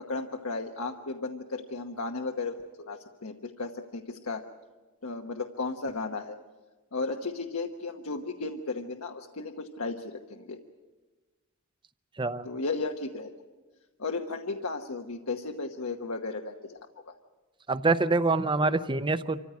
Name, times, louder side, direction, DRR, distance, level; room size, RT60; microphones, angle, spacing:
voice 1, 0.0-4.5 5.0-6.4 6.9-10.6 12.4-13.3 14.0-17.1, left 3 dB, 80° left, 3 dB, 1.1 m, -35 dB
voice 2, 12.2-12.5 17.7-19.4, right 3 dB, 25° right, 13 dB, 0.7 m, -25 dB
26.0 x 15.0 x 9.5 m, 1.3 s
head